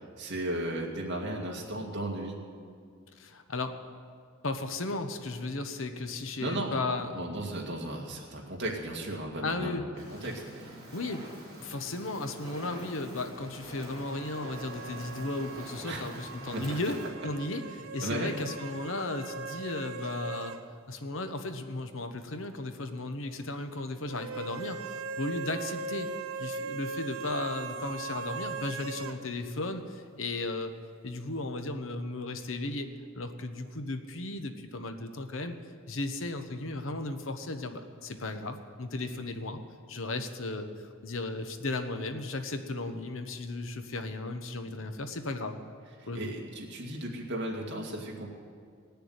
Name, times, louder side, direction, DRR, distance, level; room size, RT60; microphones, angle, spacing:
voice 1, 0.2-2.4 6.4-9.7 10.1-10.9 15.8-16.0 16.5-16.6 18.0-18.3 46.0-48.3, right 1 dB, 55° right, -1 dB, 2.3 m, -35 dB
voice 2, 3.1-3.8 4.4-7.1 9.4-9.8 10.9-11.2 11.6-17.0 17.2-24.8 25.2-26.1 26.4-30.7 31.0-32.9 33.1-35.6 35.9-39.6 39.9-40.7 41.0-45.6 46.1-46.3, left 2 dB, 70° left, 7 dB, 1.0 m, -35 dB
Fire, 10.0-17.1, equal, 20° right, 4.5 m, -46 dB
sound 1, 14.1-20.6 20.9-21.0 24.1-29.2, right 4 dB, 85° right, 0.7 m, -40 dB
17.5 x 6.8 x 9.5 m, 2.2 s
head